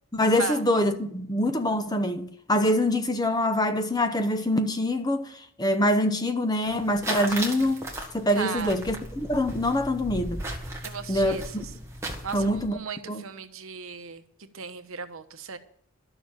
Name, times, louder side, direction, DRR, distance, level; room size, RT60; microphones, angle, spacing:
voice 1, 0.1-5.3 5.6-7.9 8.1-10.4 11.1-11.6 12.3-12.8 13.1-13.2, left 1 dB, 20° left, 0.8 m, -25 dB
sound 1, 6.7-12.7, right 1 dB, 15° right, 1.6 m, -36 dB
voice 2, 8.3-8.7 10.8-11.7 12.2-14.2 14.5-15.6, right 5 dB, 65° right, 1.0 m, -36 dB
12.0 x 7.0 x 8.7 m
head